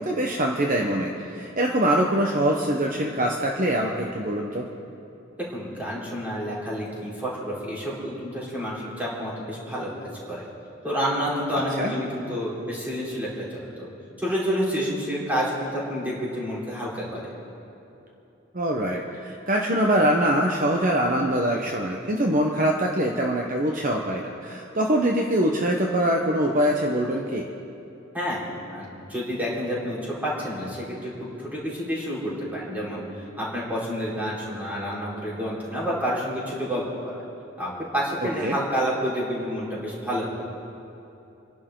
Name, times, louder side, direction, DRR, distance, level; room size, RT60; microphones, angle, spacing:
voice 1, 0.0-4.7 11.5-11.9 18.5-27.5 38.4-38.6, right 1 dB, 40° right, 0 dB, 1.0 m, -24 dB
voice 2, 5.5-10.5 10.8-13.9 14.2-17.3 28.1-28.4 28.7-37.2 37.6-40.3, equal, 10° right, -7 dB, 4.2 m, -29 dB
28.0 x 11.5 x 3.8 m, 3.0 s
head